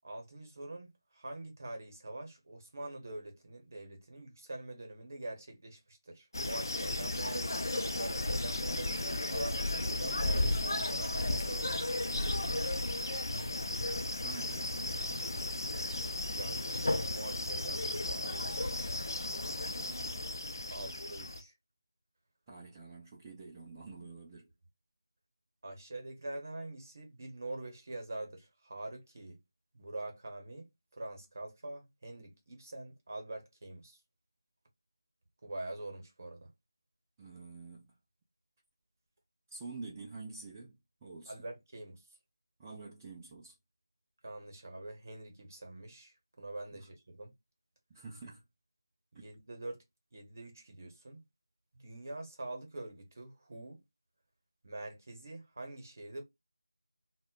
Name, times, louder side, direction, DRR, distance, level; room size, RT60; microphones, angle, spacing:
voice 1, 0.0-11.8 16.3-18.9 20.7-21.5 25.6-29.4 29.7-34.0 35.4-36.5 41.3-42.0 44.2-47.3 49.1-49.8 50.1-51.2 51.7-53.8 54.6-56.2, right 2 dB, 40° right, 0.8 m, -45 dB
sound 1, 6.3-21.4, left 2 dB, 55° left, 0.5 m, -34 dB
voice 2, 14.2-15.1 19.8-20.3 20.8-20.9 22.5-24.5 37.2-37.9 39.5-40.8 41.0-41.3 42.6-43.5 47.9-48.4 49.1-49.2, right 3 dB, 10° right, 0.3 m, -48 dB
2.1 x 2.0 x 3.6 m
figure-of-eight pair, 170°, 2 cm